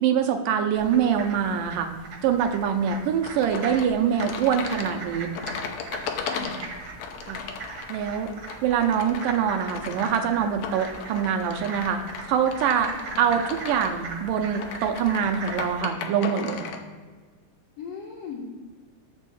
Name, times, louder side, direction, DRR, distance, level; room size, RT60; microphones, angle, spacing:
voice 1, 0.0-1.9 2.2-5.3 7.3-7.4 7.9-8.3 8.6-12.0 12.3-12.9 13.2-16.7, right 8 dB, 80° right, 5 dB, 2.3 m, -24 dB
sound 1, 0.7-15.8, right 3 dB, 55° right, 1.4 m, -40 dB
sound 2, 3.2-16.8, left 6 dB, 85° left, 1.5 m, -37 dB
voice 2, 6.2-6.6 12.8-13.2 17.8-18.4, left 5 dB, 70° left, -3 dB, 1.5 m, -38 dB
10.5 x 3.6 x 7.0 m, 1.5 s
omnidirectional pair, 4.0 m